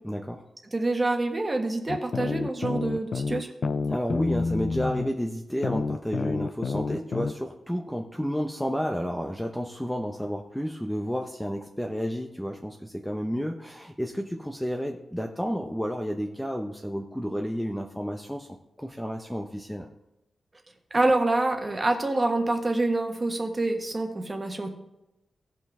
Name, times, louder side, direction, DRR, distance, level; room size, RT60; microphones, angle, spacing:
voice 1, 0.0-0.4 3.9-19.9, equal, 5° left, 2 dB, 0.7 m, -31 dB
voice 2, 0.7-3.5 20.9-24.7, right 2 dB, 25° right, 3 dB, 1.4 m, -26 dB
sound 1, 1.9-5.1 5.6-7.3, left 4 dB, 50° left, 0.4 m, -29 dB
17.0 x 5.7 x 3.6 m, 0.92 s
wide cardioid pair, 115°, 0 cm